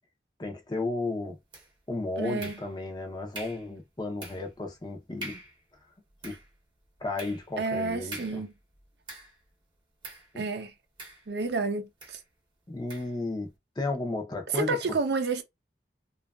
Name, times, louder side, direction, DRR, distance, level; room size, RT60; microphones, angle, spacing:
voice 1, 0.4-1.4 1.9-5.4 6.2-6.4 7.0-8.4 10.3-10.5 12.7-15.0, left 2 dB, 25° left, 0.5 m, -34 dB
sound 1, 1.5-1.9 2.4-3.0 3.3-3.7 4.2-4.6 4.9-5.0 5.2-5.6 6.0-9.5 10.0-10.3 11.0-11.6 12.0-12.2 12.9-13.2, right 2 dB, 25° right, 0.8 m, -45 dB
voice 2, 2.2-2.6 7.6-8.5 10.4-10.7 11.3-12.2 14.5-15.4, right 3 dB, 70° right, 0.5 m, -30 dB
2.7 x 2.3 x 2.3 m
head